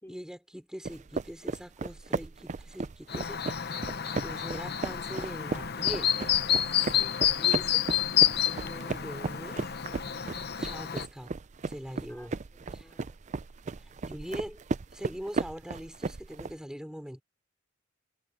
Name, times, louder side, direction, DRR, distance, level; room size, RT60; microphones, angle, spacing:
voice 1, 0.1-6.2 7.4-7.9 8.4-9.7 10.6-11.3 11.7-12.3 12.7-12.9 13.8-14.6 14.9-17.2, equal, 5° right, 4.5 m, -42 dB
sound 1, 0.8-16.5, right 4 dB, 35° right, 0.4 m, -36 dB
Chirp tweet, 3.1-11.1, left 10 dB, 55° left, 0.9 m, -29 dB
voice 2, 7.0-7.5 12.1-12.3 12.8-13.2, left 1 dB, 10° left, 3.9 m, -53 dB
head